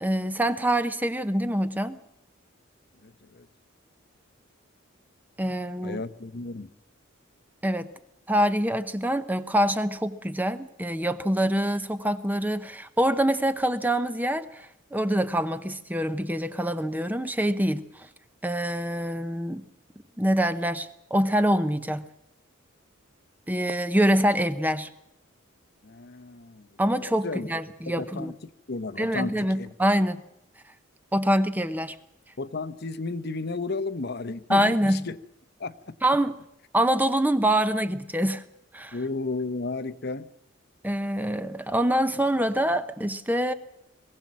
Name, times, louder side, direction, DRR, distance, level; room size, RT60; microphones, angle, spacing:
voice 1, 0.0-2.0 5.4-6.0 7.6-7.9 8.3-18.1 18.4-19.6 20.2-22.1 23.5-24.9 26.8-28.3 29.0-30.2 31.1-32.0 34.5-35.1 36.0-36.4 36.7-38.4 38.7-39.0 40.8-43.5, equal, 10° right, 0.8 m, -25 dB
voice 2, 3.0-3.5 5.8-6.7 25.8-27.5 27.9-29.7 32.4-35.2 35.6-35.9 38.9-40.3, left 3 dB, 50° left, 0.9 m, -33 dB
21.0 x 16.5 x 7.5 m
head